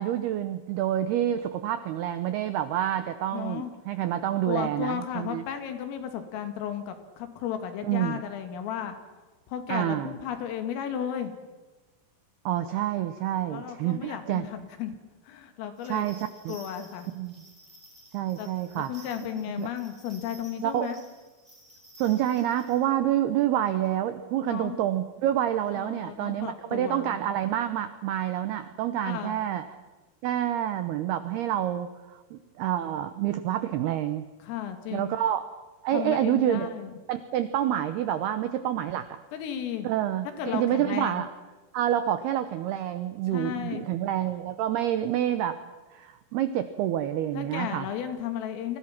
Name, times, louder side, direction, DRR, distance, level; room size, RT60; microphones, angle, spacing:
voice 1, 0.0-5.4 7.8-8.2 9.7-10.1 12.5-14.5 15.8-16.6 17.1-17.4 18.1-18.9 19.6-19.7 20.6-20.9 22.0-29.7 30.2-34.3 34.9-35.5 35.8-36.7 37.1-39.2 39.8-41.3 41.7-45.6 45.9-47.9, right 11 dB, 85° right, 10 dB, 2.3 m, -28 dB
voice 2, 3.3-3.7 4.5-9.0 9.5-11.3 13.5-14.9 15.2-16.1 16.5-17.1 18.4-18.5 18.8-21.0 24.4-24.8 25.7-27.2 29.0-29.4 34.4-35.1 35.9-37.0 39.3-39.9 40.4-41.3 43.3-43.8 47.3-48.8, left 9 dB, 80° left, 7 dB, 4.8 m, -34 dB
sound 1, 15.8-22.8, right 1 dB, 10° right, 7.6 m, -54 dB
29.5 x 25.0 x 6.0 m, 1.2 s
omnidirectional pair, 5.8 m